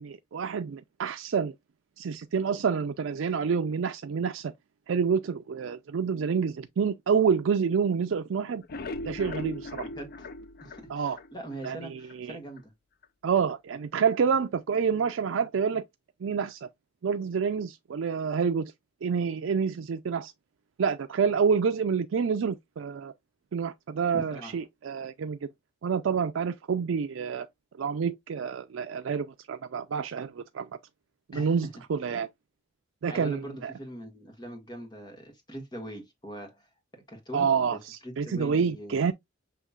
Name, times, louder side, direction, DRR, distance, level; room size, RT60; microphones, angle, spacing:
voice 1, 0.0-1.5 2.0-4.5 4.9-8.6 9.1-9.8 10.9-11.2 11.6-12.4 13.2-15.8 16.2-16.7 17.0-18.7 19.0-20.3 20.8-23.1 23.5-25.4 25.8-27.5 27.8-30.7 31.3-32.3 33.0-33.7 37.3-39.1, right 6 dB, 80° right, 0.4 m, -28 dB
sound 1, 8.5-11.7 12.1-12.2 12.6-12.7 13.0-13.1, left 2 dB, 50° left, 0.5 m, -39 dB
voice 2, 9.8-10.3 10.6-12.7 24.1-24.6 31.3-31.7 33.1-39.1, right 1 dB, 20° left, 1.4 m, -42 dB
6.8 x 2.9 x 2.3 m
head